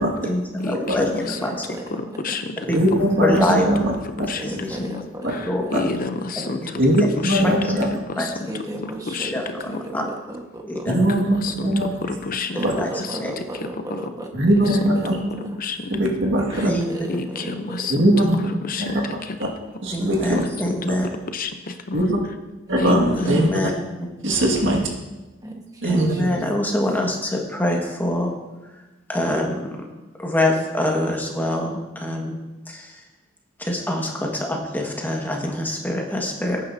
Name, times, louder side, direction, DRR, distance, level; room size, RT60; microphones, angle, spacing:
voice 1, 0.0-1.8 2.7-2.8 3.2-3.9 4.2-4.8 5.4-5.9 6.4-6.8 7.1-7.6 8.2-8.3 9.3-10.0 10.7-10.9 11.5-11.7 12.8-12.9 13.2-13.3 16.6-17.1 19.9-21.1 23.1-23.7 24.0-24.1 25.8-28.3 29.1-29.8 30.2-32.4 32.7-33.0 33.6-36.6, left 1 dB, 10° left, 0 dB, 1.6 m, -25 dB
voice 2, 0.6-1.4 2.2-2.6 4.3-5.0 5.3-6.6 7.2-7.5 8.1-8.3 9.1-9.3 9.7-9.8 11.2-11.7 12.0-12.6 13.0-13.2 13.9-14.0 15.6-16.0 17.1-17.9 18.7-19.3 21.3-22.1 22.8-23.5, left 3 dB, 45° left, 8 dB, 0.7 m, -29 dB
voice 3, 1.3-2.5 4.4-5.7 6.4-6.5 8.5-10.0 10.3-10.9 12.5-14.3 14.6-15.4 16.5-17.9 22.7-22.8 25.4-26.4, right 1 dB, 20° right, 1 dB, 1.4 m, -35 dB
voice 4, 2.7-3.9 4.2-4.3 5.2-5.3 5.7-5.8 6.8-7.9 10.9-11.9 12.6-12.7 14.3-15.2 15.9-16.7 17.9-18.4 18.8-19.1 19.4-19.5 19.8-20.4 21.9-22.2 22.7-23.7 24.2-24.9 25.8-26.3, right 1 dB, 65° right, -1 dB, 1.9 m, -20 dB
17.5 x 9.2 x 2.7 m, 1.1 s
head